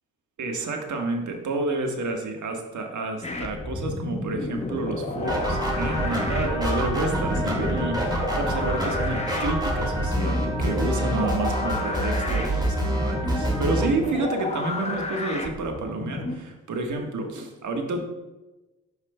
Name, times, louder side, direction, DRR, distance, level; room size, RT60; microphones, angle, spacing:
voice 1, 0.4-18.0, right 2 dB, 50° right, 3 dB, 1.4 m, -30 dB
sound 1, 3.2-16.4, left 2 dB, 15° left, 1.1 m, -31 dB
sound 2, 5.2-13.9, right 1 dB, 10° right, 2.5 m, -27 dB
11.0 x 5.4 x 2.2 m, 1.1 s
hypercardioid pair, 45°, 38 cm